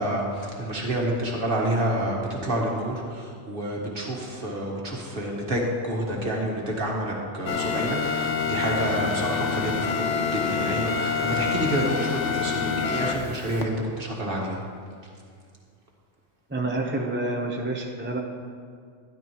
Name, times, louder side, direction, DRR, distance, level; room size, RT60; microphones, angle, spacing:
voice 1, 0.0-14.6, right 1 dB, 45° right, -1 dB, 1.7 m, -28 dB
sound 1, 7.5-13.6, left 5 dB, 70° left, 1.1 m, -27 dB
voice 2, 16.5-18.2, right 2 dB, 10° right, 0 dB, 0.6 m, -28 dB
13.0 x 11.0 x 3.0 m, 2.1 s
omnidirectional pair, 1.3 m